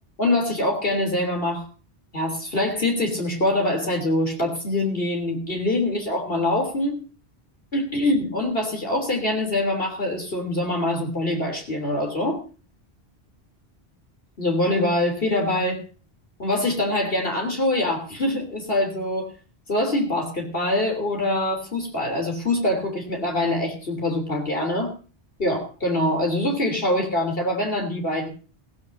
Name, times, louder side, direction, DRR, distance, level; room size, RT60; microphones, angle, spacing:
voice 1, 0.2-1.7 2.1-7.0 7.7-12.4 14.4-15.8 16.4-19.3 19.7-24.9 25.4-28.3, left 1 dB, 60° left, 2 dB, 3.5 m, -24 dB
18.0 x 15.0 x 2.7 m, 0.36 s
omnidirectional pair, 1.1 m